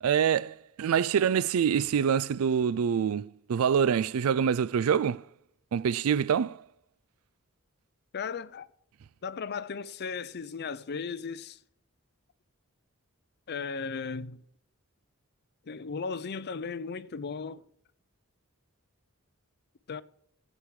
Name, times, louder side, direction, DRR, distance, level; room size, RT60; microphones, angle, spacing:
voice 1, 0.0-5.2 5.7-6.6, right 7 dB, 70° right, 0.4 m, -26 dB
voice 2, 8.1-8.7 9.2-11.6 13.5-14.4 15.7-17.6 19.9-20.0, left 5 dB, 50° left, 0.6 m, -36 dB
15.0 x 8.5 x 4.8 m
head